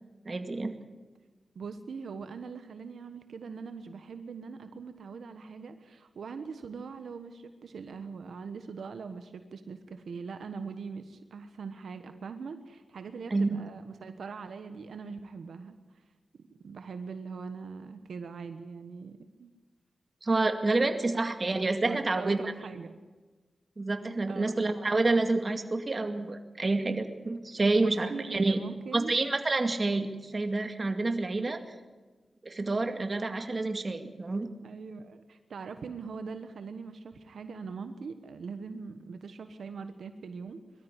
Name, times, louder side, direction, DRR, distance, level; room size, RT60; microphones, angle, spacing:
voice 1, 0.3-0.7 13.3-13.6 20.2-22.4 23.8-28.6 28.9-31.6 32.4-34.5, right 2 dB, 40° right, 7 dB, 2.2 m, -28 dB
voice 2, 1.5-15.8 16.4-19.5 21.7-22.9 24.3-24.5 27.7-29.1 34.6-40.6, right 5 dB, 90° right, 9 dB, 1.2 m, -42 dB
22.0 x 13.5 x 10.0 m, 1.3 s
cardioid pair, 70°, 0 cm